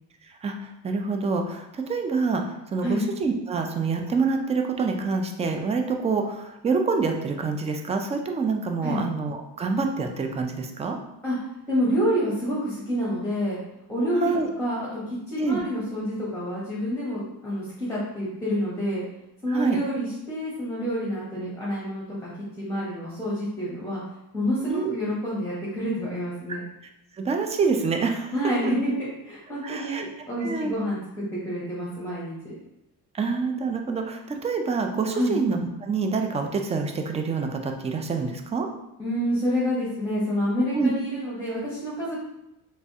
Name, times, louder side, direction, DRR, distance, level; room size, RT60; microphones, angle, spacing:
voice 1, 0.2-11.0 14.0-14.5 15.4-15.6 19.5-19.8 24.7-24.9 27.1-28.3 29.6-30.0 30.4-30.8 33.1-38.7 40.7-40.9, right 4 dB, 15° right, 4 dB, 0.3 m, -27 dB
voice 2, 11.7-13.6 13.9-14.3 14.6-19.0 19.4-22.3 22.6-24.0 24.3-26.6 28.3-32.6 35.1-35.4 39.0-42.2, equal, 5° left, -8 dB, 1.1 m, -28 dB
3.3 x 3.1 x 2.7 m, 0.90 s
cardioid pair, 100°, 41 cm